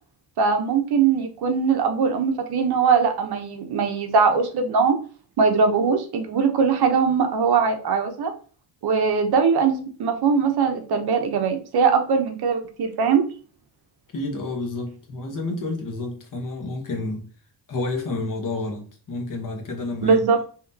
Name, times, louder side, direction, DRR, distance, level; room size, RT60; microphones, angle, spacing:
voice 1, 0.4-5.0 5.4-8.3 8.8-13.2 20.0-20.4, right 5 dB, 65° right, 0.9 m, -21 dB
voice 2, 14.1-17.3 17.7-20.2, left 2 dB, 50° left, 1.2 m, -30 dB
5.5 x 2.9 x 2.7 m
wide cardioid pair, 165°, 42 cm